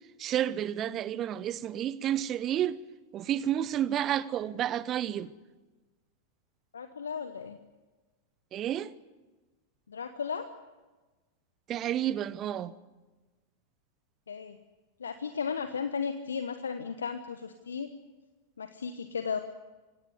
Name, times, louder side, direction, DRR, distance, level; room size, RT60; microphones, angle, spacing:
voice 1, 0.2-2.8 3.1-5.3 8.5-8.9 11.7-12.7, right 11 dB, 30° right, 1.0 m, -30 dB
voice 2, 6.7-7.6 9.9-10.5 14.3-14.6 15.0-17.9 18.6-19.4, left 6 dB, 70° left, 1.2 m, -35 dB
25.0 x 17.5 x 9.7 m
figure-of-eight pair, 90°, 0 cm